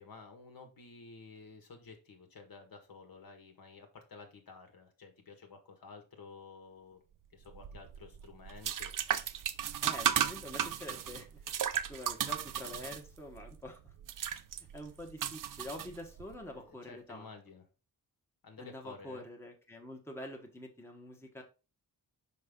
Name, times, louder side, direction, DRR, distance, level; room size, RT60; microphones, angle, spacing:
voice 1, 0.0-7.0 7.3-8.9 16.5-17.6 18.4-19.3, left 4 dB, 60° left, 4 dB, 1.6 m, -52 dB
sound 1, 7.5-16.4, right 9 dB, 55° right, 0.5 m, -35 dB
voice 2, 9.8-11.4 11.9-13.9 14.7-17.3 18.6-21.4, left 1 dB, 5° left, 2 dB, 1.1 m, -46 dB
5.4 x 5.4 x 3.6 m, 0.31 s
wide cardioid pair, 125°, 39 cm